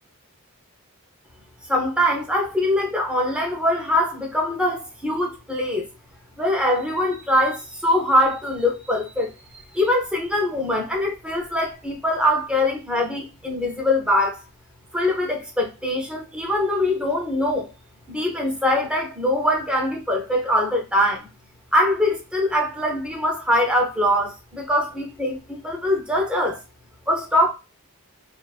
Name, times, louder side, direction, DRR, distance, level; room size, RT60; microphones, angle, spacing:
voice 1, 1.7-5.9 6.4-14.4 14.9-17.7 18.1-21.3 21.7-26.6 27.1-27.5, left 1 dB, 5° right, 0.5 m, -23 dB
2.4 x 2.3 x 2.3 m
head